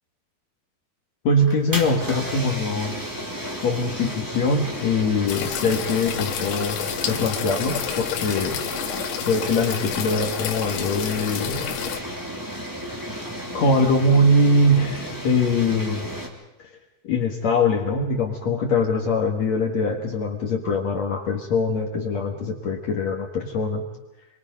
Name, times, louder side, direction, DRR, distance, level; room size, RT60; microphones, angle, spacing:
voice 1, 1.2-3.0 3.6-6.8 7.1-8.6 9.3-11.7 13.5-16.1 16.6-16.7 17.0-23.8, left 2 dB, 60° left, 0 dB, 1.9 m, -22 dB
sound 1, 1.4-16.3, equal, 35° right, 0.3 m, -33 dB
sound 2, 5.3-12.0, left 10 dB, 75° left, 3.7 m, -30 dB
27.5 x 23.5 x 5.2 m, 1.0 s
omnidirectional pair, 5.5 m